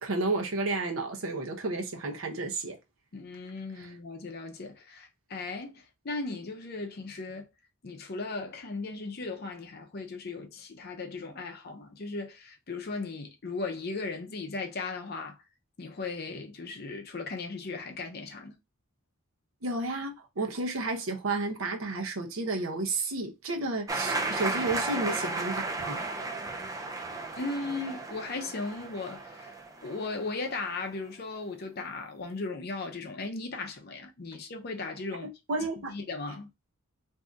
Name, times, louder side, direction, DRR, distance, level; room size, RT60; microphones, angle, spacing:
voice 1, 0.0-2.8 19.6-26.0 35.5-35.9, right 2 dB, 70° right, 0.7 m, -31 dB
voice 2, 3.1-7.5 7.8-15.4 15.8-18.6 27.4-29.6 29.8-35.3 35.8-36.5, left 3 dB, 45° left, 0.6 m, -37 dB
sound 1, 23.9-30.5, right 3 dB, 15° right, 0.3 m, -34 dB
2.6 x 2.5 x 3.3 m
head